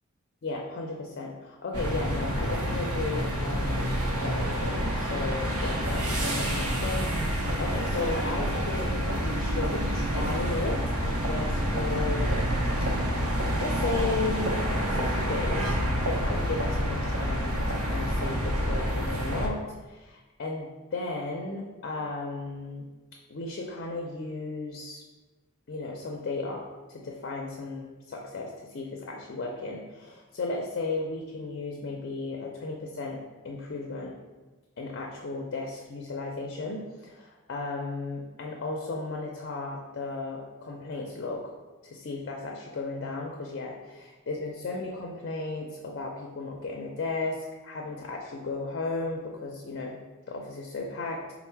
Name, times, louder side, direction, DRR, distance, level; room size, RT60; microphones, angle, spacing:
voice 1, 0.4-3.9 4.2-12.3 12.8-12.9 13.6-14.6 14.9-22.9 23.3-25.0 25.7-34.1 34.8-41.5 41.8-50.0 50.3-51.2, left 3 dB, 50° left, 0 dB, 0.4 m, -35 dB
sound 1, 1.7-19.5, equal, 90° right, 0.6 m, -28 dB
4.4 x 2.0 x 4.3 m, 1.2 s
head